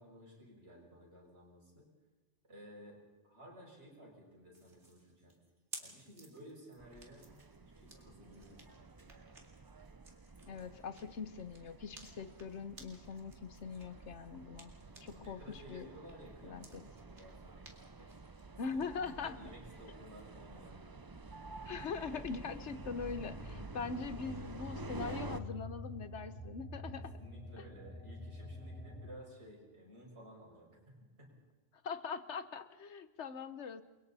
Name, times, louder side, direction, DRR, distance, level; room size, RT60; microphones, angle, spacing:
voice 1, 0.0-1.9 2.5-3.0 3.2-5.3 5.8-7.3 7.6-9.4 10.4-10.7 14.8-17.7 18.0-18.4 19.2-21.0 26.9-31.3, equal, 60° right, -2 dB, 6.8 m, -55 dB
sound 1, 4.5-15.3 15.7-18.9, right 3 dB, 80° right, 2.6 m, -57 dB
sound 2, 6.8-25.4, right 3 dB, 25° right, 0.6 m, -50 dB
voice 2, 10.4-14.7 15.0-15.9 16.4-16.8 18.6-19.4 21.6-27.1 31.8-33.8, left 5 dB, 75° left, 12 dB, 1.2 m, -42 dB
sound 3, 22.6-29.1, left 2 dB, 10° left, 2.6 m, -48 dB
29.0 x 23.0 x 4.2 m, 1.2 s
omnidirectional pair, 1.2 m